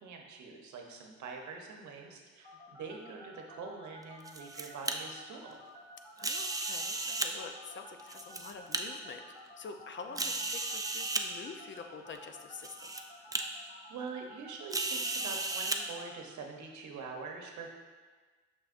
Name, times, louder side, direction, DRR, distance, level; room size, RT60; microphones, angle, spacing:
voice 1, 0.0-5.6 10.2-10.4 13.9-17.8, right 4 dB, 70° right, 2 dB, 1.0 m, -44 dB
sound 1, 2.4-16.2, left 1 dB, 25° left, 1.7 m, -52 dB
sound 2, 4.0-4.9 6.2-7.3 8.0-8.8 9.5-9.6 10.2-11.2 12.1-12.2 12.6-13.0 13.3-13.4 14.7-15.8, right 3 dB, 10° right, 0.4 m, -34 dB
voice 2, 6.2-9.2 9.6-12.7, left 5 dB, 40° left, 5 dB, 0.6 m, -46 dB
6.4 x 6.0 x 2.6 m, 1.4 s
cardioid pair, 90°, 30 cm